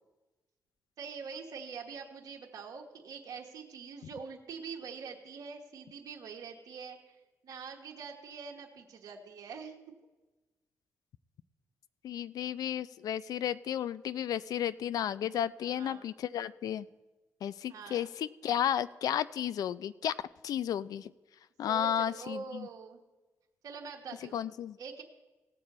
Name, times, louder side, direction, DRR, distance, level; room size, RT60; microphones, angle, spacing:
voice 1, 1.0-7.1 7.4-9.8 15.6-16.1 17.7-18.1 21.7-23.0 23.6-24.4 24.8-25.0, right 5 dB, 70° right, 1 dB, 1.2 m, -44 dB
voice 2, 12.0-16.9 17.4-20.1 20.4-21.1 21.6-22.7 24.3-24.8, left 10 dB, 75° left, 17 dB, 0.4 m, -33 dB
17.5 x 6.8 x 4.2 m, 1.1 s
cardioid pair, 70°, 6 cm